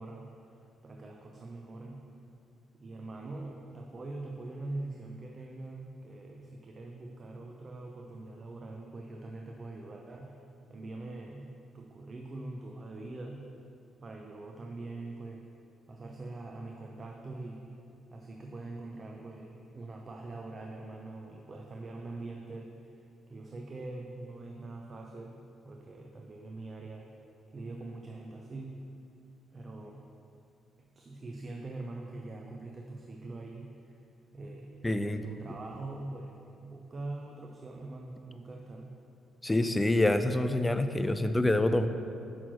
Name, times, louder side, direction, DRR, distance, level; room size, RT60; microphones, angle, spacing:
voice 1, 0.0-2.1 2.7-10.4 10.7-13.5 14.0-15.5 15.9-17.7 18.1-27.1 27.5-28.8 29.5-30.1 30.8-34.0 34.3-39.0, right 2 dB, 35° right, 1 dB, 0.6 m, -43 dB
voice 2, 34.8-35.2 39.4-41.9, left 1 dB, 15° left, 9 dB, 0.4 m, -26 dB
6.3 x 5.7 x 4.5 m, 2.6 s
cardioid pair, 90°, 0 cm